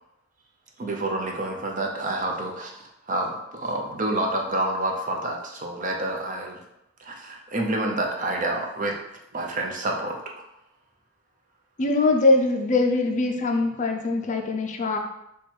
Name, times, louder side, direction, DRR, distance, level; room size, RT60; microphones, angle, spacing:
voice 1, 0.8-6.6 7.0-9.0 9.3-10.4, right 1 dB, 40° right, 1 dB, 0.6 m, -28 dB
voice 2, 11.8-15.0, left 3 dB, 35° left, 3 dB, 0.4 m, -22 dB
4.5 x 2.3 x 4.3 m, 0.84 s
head